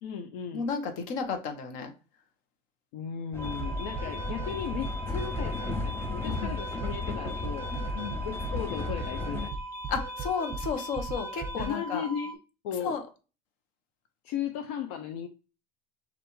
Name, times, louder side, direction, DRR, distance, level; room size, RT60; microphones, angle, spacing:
voice 1, 0.0-0.7 2.9-7.7 8.2-9.6 11.6-12.4 12.6-13.0 14.2-15.3, left 8 dB, 75° left, 0.5 m, -36 dB
voice 2, 0.5-1.9 6.3-6.6 7.7-8.2 9.9-12.0 12.8-13.0, left 5 dB, 60° left, 0.9 m, -33 dB
Train, 3.3-9.5, left 4 dB, 15° left, 0.3 m, -35 dB
sound 1, 3.4-12.3, right 2 dB, 15° right, 0.9 m, -37 dB
6.6 x 2.5 x 3.0 m
cardioid pair, 145°, 15 cm